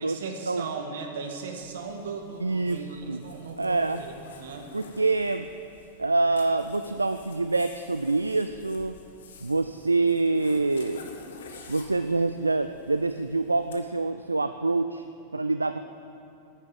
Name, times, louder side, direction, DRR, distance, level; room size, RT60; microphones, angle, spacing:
voice 1, 0.0-4.1 4.4-4.7, right 4 dB, 60° right, 3 dB, 1.8 m, -37 dB
Zipper (clothing), 1.6-13.8, left 4 dB, 65° left, 1.4 m, -50 dB
voice 2, 2.4-3.2 3.6-4.0 4.7-5.5 6.0-8.9 9.4-11.0 11.7-15.0 15.3-15.8, right 3 dB, 80° right, 10 dB, 0.4 m, -26 dB
10.5 x 9.9 x 9.5 m, 2.6 s
figure-of-eight pair, 90°, 0 cm